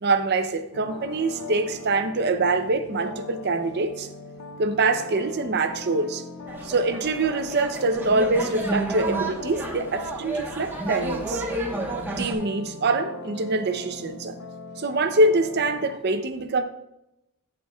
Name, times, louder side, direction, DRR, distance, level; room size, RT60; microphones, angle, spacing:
voice 1, 0.0-4.1 4.6-6.2 6.6-11.4 12.2-14.4 14.8-16.6, right 2 dB, 50° right, 0.6 m, -24 dB
sound 1, 0.7-16.0, left 3 dB, 75° left, 0.7 m, -40 dB
sound 2, 6.5-12.3, right 2 dB, 10° right, 1.2 m, -31 dB
15.0 x 5.8 x 2.3 m
head